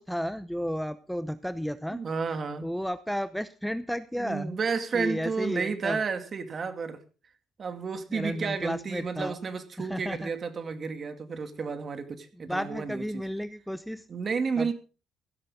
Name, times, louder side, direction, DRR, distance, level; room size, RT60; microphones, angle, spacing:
voice 1, 0.0-2.0 2.6-4.6 4.9-6.0 8.1-9.4 9.8-10.3 12.5-14.1 14.6-14.7, equal, ahead, 12 dB, 0.7 m, -33 dB
voice 2, 1.9-2.7 4.2-7.0 7.6-13.2 14.1-14.7, right 5 dB, 40° right, 8 dB, 2.4 m, -32 dB
16.0 x 13.0 x 3.7 m, 0.36 s
cardioid pair, 110°, 0 cm